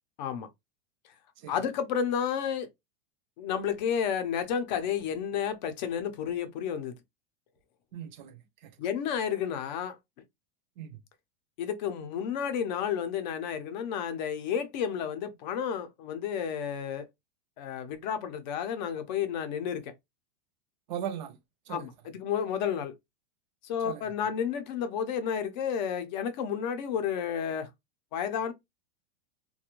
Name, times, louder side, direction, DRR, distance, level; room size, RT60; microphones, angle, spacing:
voice 1, 1.5-2.7 3.4-6.9 8.8-10.0 11.6-17.0 17.6-19.9 21.7-22.9 23.6-27.7 28.1-28.5, left 8 dB, 45° left, 0.5 m, -31 dB
voice 2, 7.9-8.7 10.8-11.0 20.9-21.4 21.7-21.9 23.8-24.0, right 9 dB, 50° right, 0.4 m, -39 dB
2.4 x 2.2 x 2.9 m
supercardioid pair, 165°, 31 cm